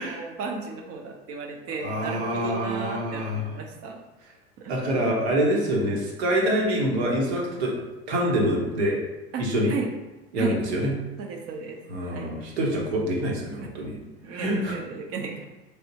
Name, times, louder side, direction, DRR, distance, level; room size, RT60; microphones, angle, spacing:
voice 1, 0.0-4.0 4.6-4.7 9.3-9.4 9.7-9.9 10.4-10.6 11.2-12.3 14.2-15.4, right 5 dB, 50° right, 2 dB, 0.8 m, -34 dB
voice 2, 1.8-3.5 4.7-7.7 8.1-9.0 9.4-9.7 10.3-10.9 11.9-13.9 14.3-14.8, equal, 80° right, -2 dB, 1.1 m, -26 dB
3.5 x 3.4 x 2.8 m, 1.1 s
hypercardioid pair, 90°, 32 cm